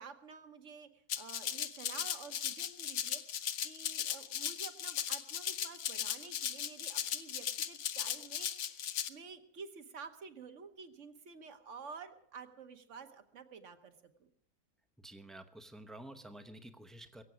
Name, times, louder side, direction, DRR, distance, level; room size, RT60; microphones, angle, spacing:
voice 1, 0.0-3.2 3.6-14.3, right 5 dB, 55° right, 9 dB, 1.4 m, -51 dB
Rattle (instrument), 1.1-9.1, left 9 dB, 60° left, 0.9 m, -37 dB
voice 2, 15.0-17.2, right 1 dB, ahead, 8 dB, 0.5 m, -50 dB
22.5 x 8.2 x 6.1 m, 0.71 s
omnidirectional pair, 1.6 m